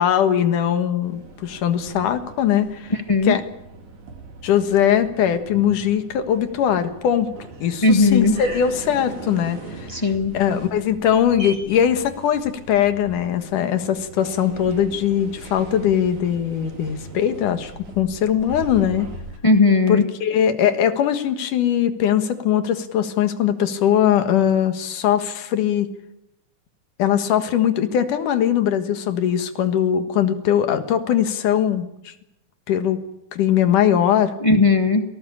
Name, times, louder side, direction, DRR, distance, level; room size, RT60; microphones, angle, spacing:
voice 1, 0.0-2.9 3.2-3.4 4.4-7.3 7.6-10.0 10.3-19.1 19.9-25.9 27.0-32.1 32.7-33.0 33.3-34.3, left 9 dB, 85° left, 9 dB, 3.1 m, -20 dB
sound 1, 1.0-19.4, right 3 dB, 70° right, 4.7 m, -40 dB
voice 2, 2.9-3.4 7.8-8.3 9.9-10.3 19.4-20.1 34.4-35.0, left 3 dB, 40° left, 6 dB, 0.4 m, -17 dB
27.5 x 19.0 x 8.7 m, 0.88 s
omnidirectional pair, 3.5 m